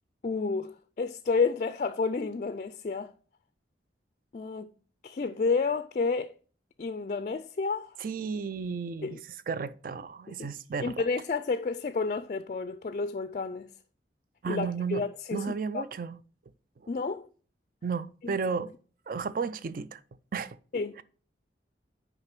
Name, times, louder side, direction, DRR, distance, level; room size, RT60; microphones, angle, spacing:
voice 1, 0.2-3.1 4.3-4.7 5.0-6.4 6.8-8.0 9.0-9.2 10.4-10.5 10.8-13.7 14.5-15.8 16.9-17.3 18.2-18.4 20.7-21.0, left 4 dB, 40° left, 0.3 m, -30 dB
voice 2, 8.0-9.2 9.5-10.9 14.4-15.0 15.3-16.2 17.8-18.7 19.1-20.0 20.3-20.6 21.0-21.1, right 5 dB, 50° right, 0.4 m, -33 dB
6.4 x 5.0 x 5.9 m
head